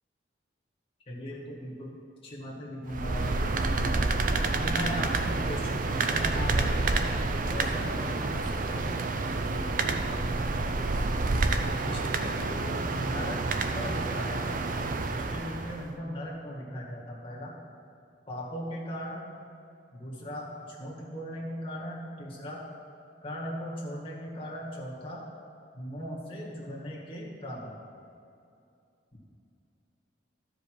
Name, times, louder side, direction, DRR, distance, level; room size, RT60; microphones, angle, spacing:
voice 1, 1.1-4.0 4.6-7.0 7.5-8.9 9.4-10.8 11.6-17.6 18.3-19.3 19.9-22.6 23.2-25.2 25.7-27.7, equal, 30° left, -4 dB, 1.9 m, -38 dB
sound 1, 2.9-15.9, right 3 dB, 50° right, 0.6 m, -29 dB
13.5 x 5.1 x 4.7 m, 2.6 s
head